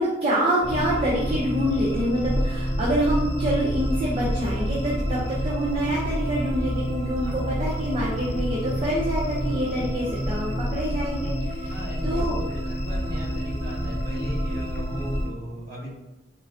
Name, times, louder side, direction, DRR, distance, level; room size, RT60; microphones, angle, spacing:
voice 1, 0.0-11.7 12.0-12.4, equal, 35° right, -6 dB, 0.5 m, -26 dB
sound 1, 0.6-15.3, equal, 75° left, 0.8 m, -28 dB
voice 2, 11.7-15.9, equal, 50° right, -7 dB, 1.5 m, -39 dB
3.7 x 2.0 x 2.7 m, 1.1 s
head